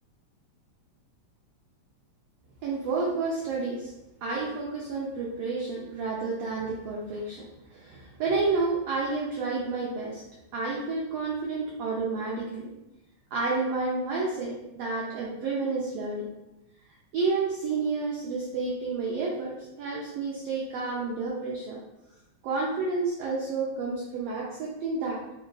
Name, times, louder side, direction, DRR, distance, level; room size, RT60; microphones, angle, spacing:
voice 1, 2.6-3.9 4.2-7.5 7.7-10.2 10.5-12.7 13.3-16.3 17.1-19.5 19.8-21.8 22.4-25.2, right 3 dB, 85° right, -3 dB, 1.3 m, -30 dB
6.0 x 2.3 x 2.3 m, 0.95 s
omnidirectional pair, 3.3 m